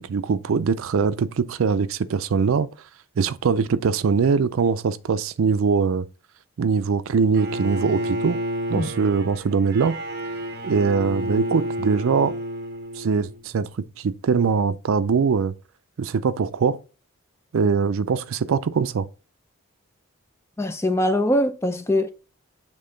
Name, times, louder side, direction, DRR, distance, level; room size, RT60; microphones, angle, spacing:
voice 1, 0.0-2.7 3.2-6.1 6.6-8.4 8.7-10.0 10.6-12.4 13.0-15.5 16.0-16.8 17.5-19.1, right 5 dB, 70° right, 0.4 m, -22 dB
Bowed string instrument, 7.3-13.5, equal, 50° right, 0.9 m, -30 dB
voice 2, 20.6-22.1, left 1 dB, 10° left, 0.4 m, -22 dB
7.6 x 3.6 x 3.8 m
head